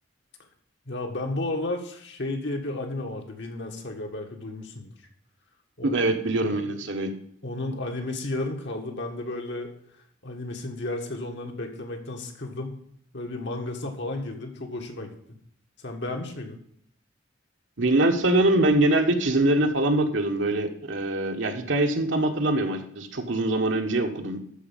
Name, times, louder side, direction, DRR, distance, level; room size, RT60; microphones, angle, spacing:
voice 1, 0.9-4.9 5.8-6.1 6.5-6.6 7.4-9.7 10.2-12.8 13.1-15.1 15.8-16.6, left 2 dB, 60° left, 3 dB, 1.8 m, -33 dB
voice 2, 5.8-7.1 17.8-24.4, right 2 dB, 65° right, 5 dB, 1.3 m, -23 dB
13.0 x 4.8 x 7.3 m, 0.67 s
head